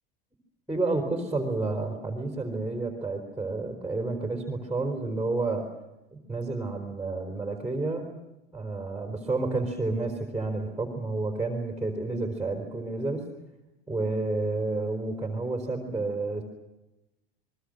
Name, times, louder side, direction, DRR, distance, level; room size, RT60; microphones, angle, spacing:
voice 1, 0.7-5.6 6.1-8.1 8.5-13.3 13.9-16.4, right 3 dB, 5° right, 2 dB, 3.8 m, -30 dB
28.5 x 22.0 x 6.5 m, 0.98 s
supercardioid pair, 145°, 29 cm